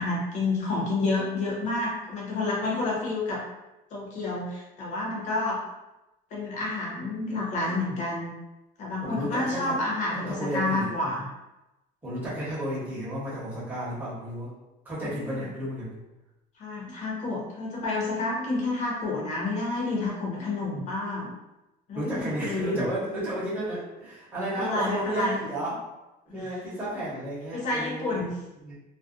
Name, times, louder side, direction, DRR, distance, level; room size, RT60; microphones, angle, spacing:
voice 1, 0.0-3.4 3.9-5.6 6.3-8.3 8.8-11.3 15.2-15.4 16.6-21.3 21.9-22.9 24.3-25.5 26.3-26.6 27.5-28.3, left 2 dB, 45° left, -4 dB, 0.8 m, -29 dB
voice 2, 9.0-9.8 10.1-10.9 12.0-14.5 14.8-16.0 21.9-25.8 26.3-28.3 28.6-28.8, right 1 dB, 10° right, -9 dB, 0.8 m, -32 dB
2.5 x 2.1 x 2.4 m, 0.98 s
cardioid pair, 165°, 17 cm